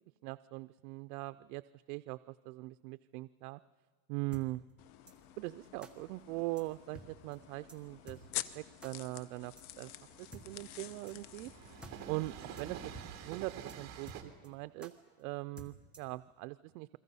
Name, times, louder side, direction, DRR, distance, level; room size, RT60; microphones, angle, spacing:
voice 1, 0.2-1.6 1.9-3.6 4.1-4.6 5.4-9.9 10.2-11.5 12.0-12.8 13.2-14.9 15.2-17.0, right 21 dB, 85° right, 13 dB, 0.6 m, -41 dB
sound 1, 4.3-4.5 5.1-5.2 5.8-5.9 6.6-6.7 6.9-7.1 7.3-7.4 7.7-7.8 8.1-8.2 8.8-8.9 9.6-9.7 10.3-10.5 11.1-11.2 11.5-11.6 11.8-12.0 12.2-12.3 12.6-12.7 12.9-13.1 13.3-13.4 13.7-13.8 14.1-14.5 14.8-14.9 15.6-16.2, equal, ahead, 1.3 m, -51 dB
sound 2, 4.8-13.0, left 13 dB, 80° left, 1.1 m, -48 dB
Train, 5.1-14.2, right 8 dB, 35° right, 2.2 m, -50 dB
29.0 x 22.5 x 5.5 m, 1.4 s
cardioid pair, 165°, 44 cm